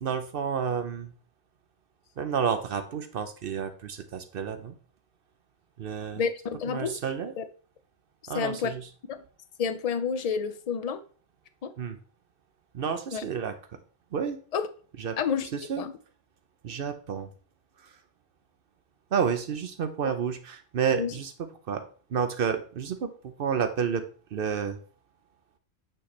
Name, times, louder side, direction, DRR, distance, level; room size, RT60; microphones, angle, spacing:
voice 1, 0.0-1.1 2.2-4.7 5.8-6.2 6.7-7.3 8.3-8.9 11.8-12.0 12.7-13.6 14.1-14.4 15.0-15.2 15.5-15.9 16.6-17.3 19.1-21.3 21.7-21.8 22.1-23.1 23.4-24.0 24.3-24.8, right 7 dB, 60° right, 9 dB, 0.8 m, -30 dB
voice 2, 6.1-7.0 7.4-7.5 8.2-8.7 9.1-9.2 9.6-11.0 11.6-11.7 13.1-13.2 14.5-14.7 15.2-15.5 15.8-15.9 20.0-20.1 21.0-21.1, left 6 dB, 45° left, 10 dB, 0.6 m, -29 dB
8.7 x 3.2 x 4.1 m, 0.41 s
omnidirectional pair, 1.1 m